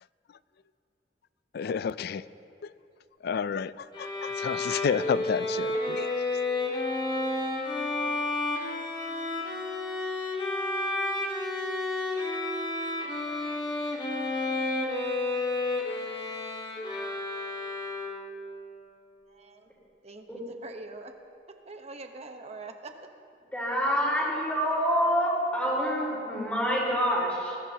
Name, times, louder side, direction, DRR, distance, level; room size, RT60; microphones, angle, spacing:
voice 1, 1.5-2.3 2.6-2.7 3.2-6.4, left 6 dB, 60° left, 17 dB, 0.4 m, -31 dB
Bowed string instrument, 3.9-18.5, left 2 dB, 25° left, 1.9 m, -31 dB
voice 2, 19.3-19.7 20.0-21.1 21.5-23.1, right 3 dB, 40° right, 5 dB, 1.0 m, -44 dB
voice 3, 23.5-27.6, equal, 10° left, -5 dB, 4.3 m, -27 dB
21.0 x 16.0 x 2.9 m, 2.6 s
head